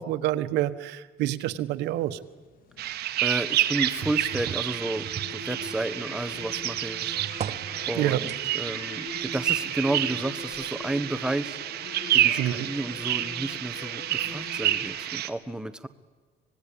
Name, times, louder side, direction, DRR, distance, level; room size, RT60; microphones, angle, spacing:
voice 1, 0.0-2.2 7.9-8.2 12.4-12.7, right 13 dB, 90° right, 12 dB, 1.3 m, -27 dB
sound 1, 1.7-15.0, left 4 dB, 55° left, 3.2 m, -44 dB
sound 2, 2.8-15.3, right 13 dB, 70° right, 1.5 m, -29 dB
voice 2, 3.2-7.2 7.8-11.6 12.1-15.9, right 1 dB, 5° right, 11 dB, 1.3 m, -32 dB
sound 3, 4.0-6.0 6.4-8.4 9.4-10.3 11.0-11.1, right 7 dB, 40° right, 1.3 m, -39 dB
25.5 x 20.0 x 8.7 m, 1.5 s
cardioid pair, 110°, 17 cm